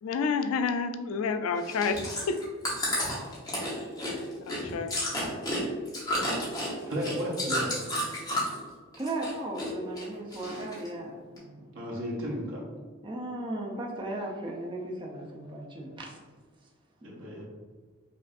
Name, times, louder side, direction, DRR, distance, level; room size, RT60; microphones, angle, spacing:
voice 1, 0.0-2.4 4.4-5.0, left 5 dB, 75° left, 9 dB, 0.3 m, -29 dB
Chewing mastication, 1.6-8.6 8.9-9.7 10.0-10.9 11.4-11.5, left 1 dB, 15° left, 0.9 m, -31 dB
voice 2, 6.9-7.7 11.7-12.6 17.0-17.4, equal, 60° right, -3 dB, 1.0 m, -33 dB
voice 3, 9.0-11.7 13.0-16.2 17.1-17.2, right 1 dB, 20° right, -2 dB, 0.5 m, -36 dB
5.3 x 2.6 x 2.5 m, 1.4 s
head